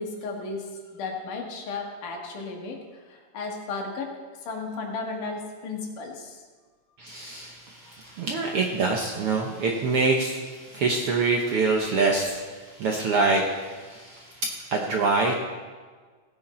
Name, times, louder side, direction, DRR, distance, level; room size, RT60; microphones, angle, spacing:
voice 1, 0.0-4.1 4.5-6.4 8.0-8.2, left 3 dB, 75° left, 1 dB, 3.1 m, -34 dB
voice 2, 7.0-15.4, right 3 dB, 65° right, 0 dB, 1.4 m, -25 dB
17.0 x 9.5 x 4.3 m, 1.5 s
omnidirectional pair, 3.7 m